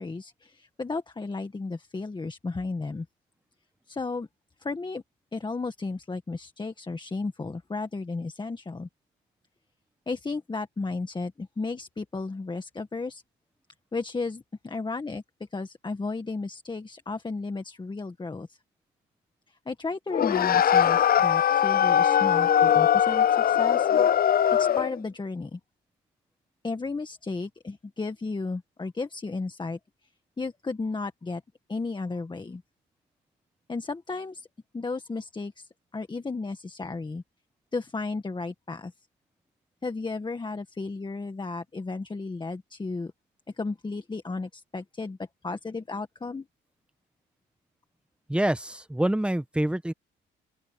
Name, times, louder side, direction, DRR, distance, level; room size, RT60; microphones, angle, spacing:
voice 1, 0.0-3.1 3.9-4.3 4.6-5.0 5.3-8.9 10.1-13.2 13.9-18.6 19.5-23.9 24.5-25.6 26.6-29.8 30.4-31.4 31.7-32.6 33.7-34.5 34.7-37.2 37.7-38.9 39.8-43.1 43.6-45.2 45.4-46.5, left 3 dB, 25° left, 1.7 m, -34 dB
sound 1, 20.1-25.0, left 9 dB, 50° left, 0.6 m, -21 dB
voice 2, 48.3-49.9, right 1 dB, 5° right, 1.2 m, -26 dB
open air
cardioid pair, 90°, 20 cm